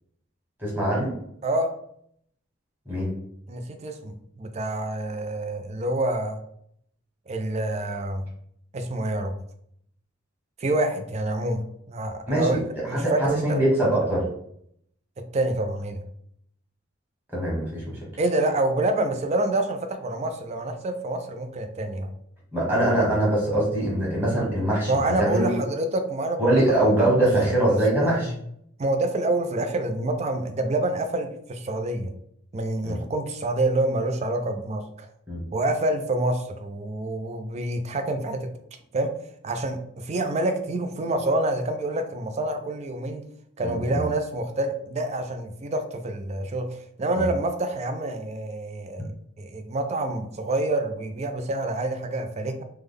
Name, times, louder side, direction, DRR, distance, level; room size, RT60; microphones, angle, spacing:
voice 1, 0.6-1.1 2.9-3.1 12.3-12.6 12.9-14.3 17.3-18.0 22.5-24.9 25.2-25.5 26.4-28.3 32.8-33.0 35.3-35.4 43.6-44.0 47.2-47.3, right 1 dB, 10° right, -6 dB, 1.4 m, -23 dB
voice 2, 1.4-1.7 3.5-6.4 7.3-8.3 8.7-9.3 10.6-12.6 12.9-13.6 15.2-16.0 18.2-22.1 24.9-26.6 27.7-28.4 28.8-32.1 32.5-35.1 35.5-38.5 38.9-39.1 39.4-43.2 43.6-49.1 49.4-52.6, right 2 dB, 30° right, 6 dB, 0.4 m, -27 dB
3.3 x 2.1 x 3.5 m, 0.70 s
head